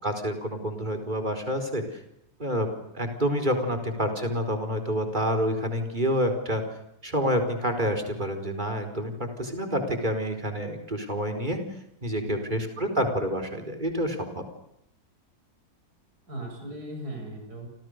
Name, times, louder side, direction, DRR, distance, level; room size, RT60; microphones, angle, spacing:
voice 1, 0.0-2.0 2.4-2.7 2.9-6.6 7.0-11.6 12.0-14.4, equal, 30° right, 6 dB, 4.9 m, -28 dB
voice 2, 12.2-12.6 16.3-17.7, right 1 dB, 70° right, 2 dB, 7.6 m, -38 dB
29.0 x 28.0 x 6.7 m, 0.80 s
omnidirectional pair, 1.7 m